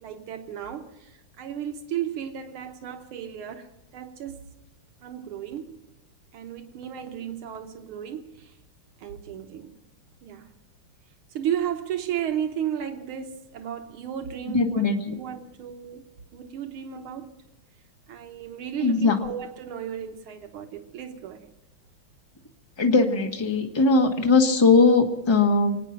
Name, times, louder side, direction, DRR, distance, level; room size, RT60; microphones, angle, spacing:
voice 1, 0.0-3.7 3.9-4.4 5.0-5.8 6.3-8.6 9.0-9.8 10.2-10.5 11.3-14.9 15.1-16.0 16.3-17.3 18.1-21.5, right 9 dB, 85° right, 1.9 m, -34 dB
voice 2, 14.5-15.1 18.8-19.2 22.8-25.8, left 3 dB, 15° left, 1.2 m, -20 dB
25.5 x 9.2 x 5.9 m
omnidirectional pair, 2.3 m